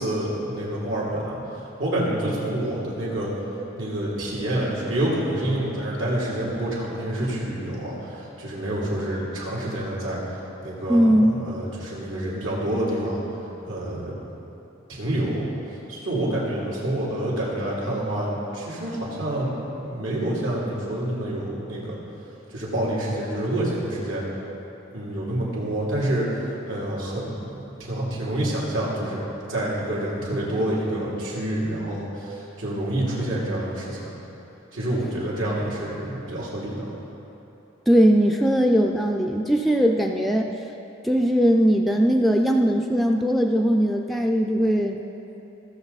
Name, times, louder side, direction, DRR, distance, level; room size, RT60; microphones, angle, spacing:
voice 1, 0.0-3.3 3.8-10.2 10.6-13.2 13.7-14.2 14.9-22.0 22.5-24.2 24.9-29.2 29.5-34.1 34.7-36.9, right 1 dB, 80° right, -6 dB, 2.8 m, -27 dB
voice 2, 10.9-11.3 37.9-40.5 41.0-45.0, equal, ahead, 2 dB, 0.4 m, -19 dB
16.5 x 6.8 x 4.0 m, 3.0 s
head